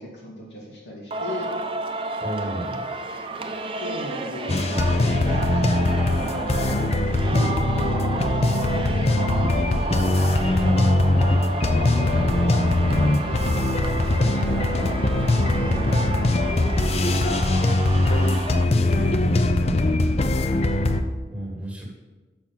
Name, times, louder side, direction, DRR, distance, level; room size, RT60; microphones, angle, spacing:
voice 1, 0.0-1.5 3.8-9.1 9.7-10.0 11.1-14.9 15.7-15.9 16.5-17.5, equal, 80° left, -3 dB, 2.6 m, -37 dB
Singing, 1.1-18.6, right 3 dB, 30° right, 0.6 m, -31 dB
voice 2, 2.2-2.9 8.1-8.2 10.6-11.2 15.6-15.8 18.6-19.8 21.3-21.8, right 1 dB, 10° right, -3 dB, 1.8 m, -32 dB
sound 1, 4.5-21.0, left 2 dB, 35° left, 0.5 m, -21 dB
6.2 x 6.1 x 7.2 m, 1.2 s
head